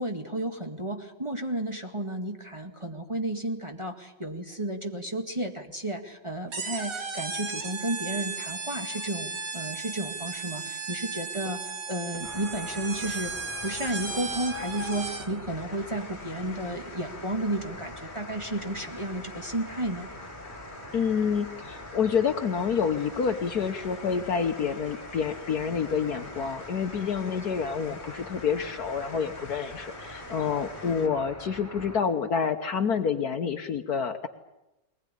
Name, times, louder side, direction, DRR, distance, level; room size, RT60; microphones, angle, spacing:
voice 1, 0.0-13.3 13.6-20.1, right 1 dB, 15° right, 2 dB, 1.9 m, -33 dB
sound 1, 6.5-15.4, right 4 dB, 65° right, 2.9 m, -35 dB
sound 2, 12.2-32.0, left 1 dB, 10° left, 4.9 m, -43 dB
sound 3, 15.5-31.1, left 4 dB, 35° left, 1.6 m, -49 dB
voice 2, 20.9-34.3, left 6 dB, 60° left, 7 dB, 1.4 m, -28 dB
21.5 x 20.0 x 10.0 m, 0.97 s
omnidirectional pair, 2.1 m